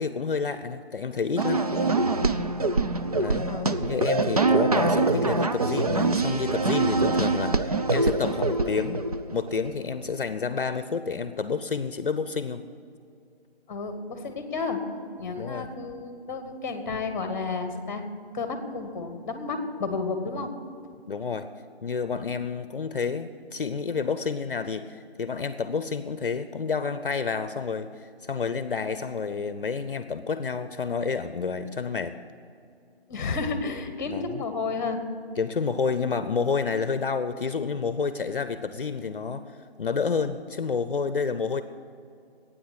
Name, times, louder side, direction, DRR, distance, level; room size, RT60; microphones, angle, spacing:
voice 1, 0.0-1.6 3.1-3.5 3.8-9.0 9.3-12.6 15.4-15.7 20.4-20.5 21.1-21.5 21.8-32.1 34.1-34.4 35.4-41.6, left 5 dB, 55° left, 12 dB, 0.7 m, -29 dB
sound 1, 1.4-9.7, right 3 dB, 35° right, 0.5 m, -24 dB
voice 2, 13.7-14.8 15.2-18.0 18.3-20.5 33.1-35.0, left 4 dB, 15° left, 7 dB, 1.1 m, -31 dB
13.0 x 9.2 x 8.0 m, 2.5 s
figure-of-eight pair, 165°, 32 cm